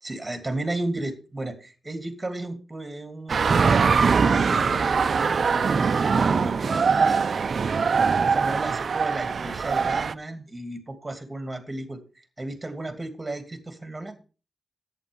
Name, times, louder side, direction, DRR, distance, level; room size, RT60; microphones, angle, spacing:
voice 1, 0.0-7.2 7.7-14.1, right 2 dB, 20° right, 8 dB, 2.7 m, -34 dB
sound 1, 3.3-10.1, right 5 dB, 65° right, 0.5 m, -22 dB
11.0 x 8.6 x 5.2 m, 0.35 s
cardioid pair, 80°, 0 cm